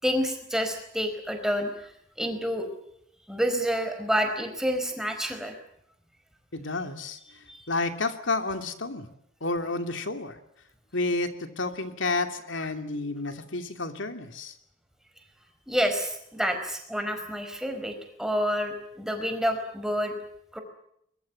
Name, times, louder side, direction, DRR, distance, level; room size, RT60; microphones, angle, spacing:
voice 1, 0.0-1.9 2.2-2.7 3.3-5.5 7.5-7.7 15.7-20.1 20.5-20.6, equal, 5° right, 6 dB, 4.7 m, -28 dB
voice 2, 6.5-9.1 9.4-10.4 10.9-14.6, left 3 dB, 70° left, 7 dB, 2.7 m, -31 dB
23.5 x 22.0 x 8.5 m, 0.72 s
head